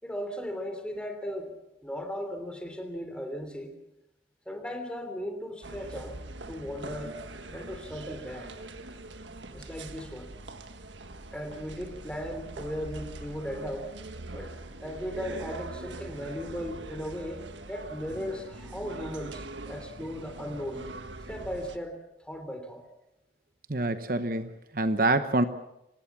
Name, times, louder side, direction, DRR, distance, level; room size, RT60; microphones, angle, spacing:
voice 1, 0.0-1.5 1.8-3.7 4.4-6.2 6.5-7.1 7.5-8.5 9.5-10.4 11.3-13.9 14.3-14.5 14.8-17.4 17.7-20.8 21.3-22.8, equal, 5° left, 6 dB, 3.2 m, -37 dB
sound 1, 5.6-21.8, right 2 dB, 90° right, 1.6 m, -42 dB
voice 2, 23.7-25.4, right 2 dB, 50° right, 10 dB, 1.0 m, -26 dB
25.5 x 19.5 x 7.3 m, 0.89 s
head